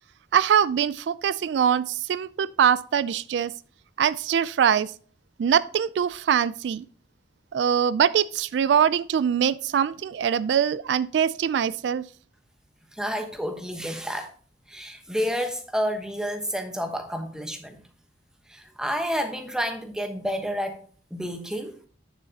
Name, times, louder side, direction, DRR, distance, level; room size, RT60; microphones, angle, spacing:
voice 1, 0.3-3.5 4.0-4.9 5.4-6.9 7.5-12.0, right 8 dB, 80° right, 0.3 m, -23 dB
voice 2, 12.9-14.3 14.7-17.8 18.5-20.8 21.1-21.8, equal, 5° right, 1.1 m, -30 dB
9.2 x 6.8 x 2.8 m
head